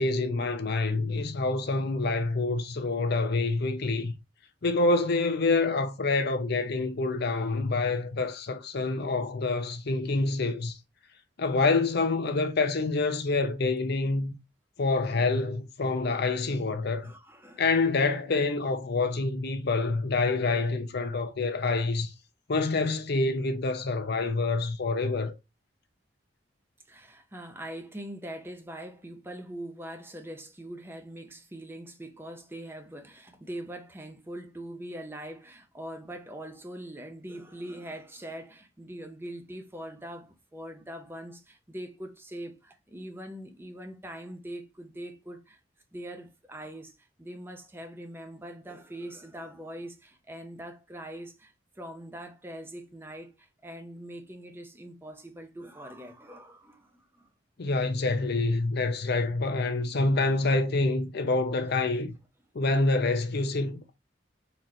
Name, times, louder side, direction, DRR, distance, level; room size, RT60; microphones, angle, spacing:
voice 1, 0.0-4.1 4.6-10.8 11.4-14.3 14.8-17.1 17.6-22.1 22.5-25.3 57.6-62.1 62.5-63.9, left 3 dB, 60° left, 0.7 m, -27 dB
voice 2, 17.0-17.6 26.9-45.6 45.9-57.3, right 1 dB, 10° right, 0.6 m, -42 dB
4.0 x 3.0 x 3.1 m
head